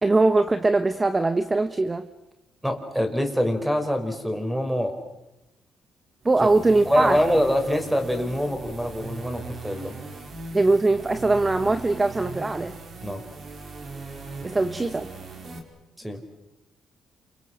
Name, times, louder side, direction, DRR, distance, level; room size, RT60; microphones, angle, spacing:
voice 1, 0.0-2.1 6.2-7.2 10.5-12.8 14.4-15.1, right 2 dB, 20° right, 10 dB, 1.3 m, -21 dB
voice 2, 2.6-4.9 6.4-6.5 6.9-9.9 13.0-13.2 16.0-16.2, equal, 5° right, 6 dB, 5.5 m, -25 dB
sound 1, 6.2-15.6, right 4 dB, 55° right, 5.4 m, -39 dB
29.0 x 28.5 x 6.5 m, 0.95 s
cardioid pair, 90°, 0 cm